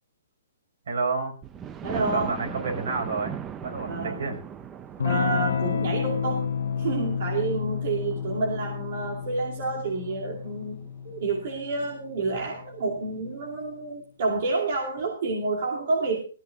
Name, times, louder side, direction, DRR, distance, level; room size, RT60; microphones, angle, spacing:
voice 1, 0.9-1.3 1.7-3.4 3.6-4.4, right 4 dB, 75° right, 2 dB, 5.9 m, -30 dB
Thunder, 1.4-11.1 11.7-11.8 12.2-12.3 12.6-12.7, right 8 dB, 15° right, 0.5 m, -40 dB
voice 2, 1.8-2.4 3.9-4.2 5.0-6.5 6.8-10.8 11.0-16.3, right 3 dB, 50° right, -1 dB, 2.7 m, -29 dB
Electric guitar / Strum, 5.0-13.3, left 7 dB, 75° left, 0.6 m, -31 dB
18.5 x 14.5 x 2.5 m, 0.35 s
hypercardioid pair, 165°, 0 cm